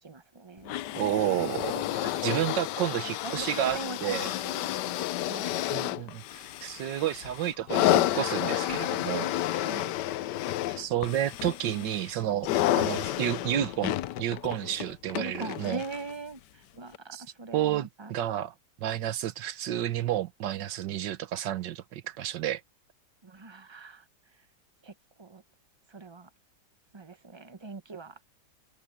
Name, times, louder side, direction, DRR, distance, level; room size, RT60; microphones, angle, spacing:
voice 1, 0.0-0.8 2.0-2.3 3.2-4.2 4.4-5.6 9.6-10.0 10.6-10.9 11.7-13.1 13.5-13.6 15.2-18.1 23.2-24.1 24.8-25.4 25.9-26.3 26.9-28.2, right 3 dB, 25° right, 0.6 m, -42 dB
sound 1, 0.7-16.1 16.9-17.0, left 14 dB, 80° left, 1.3 m, -30 dB
voice 2, 1.0-4.3 5.7-9.3 10.8-15.8 17.1-17.2 17.5-18.5 18.8-22.6, right 12 dB, 90° right, 1.5 m, -31 dB
omnidirectional pair, 1.9 m